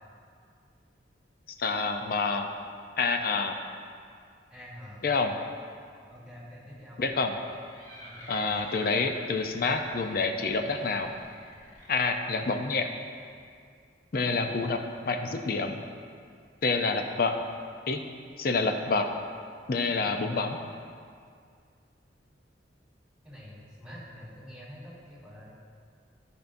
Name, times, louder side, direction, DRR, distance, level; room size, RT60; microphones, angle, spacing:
voice 1, 1.6-2.5 3.0-3.6 5.0-5.3 7.0-7.3 8.3-11.1 11.9-12.9 14.1-15.8 16.6-17.4 17.9-18.0 18.4-19.1 19.7-20.6, left 3 dB, 50° left, 5 dB, 0.5 m, -27 dB
voice 2, 4.5-5.0 6.1-7.0 8.0-8.6 23.2-25.5, equal, 5° right, -8 dB, 2.1 m, -46 dB
sound 1, 7.5-12.6, equal, 20° left, 1.1 m, -49 dB
13.5 x 5.3 x 2.6 m, 2.2 s
head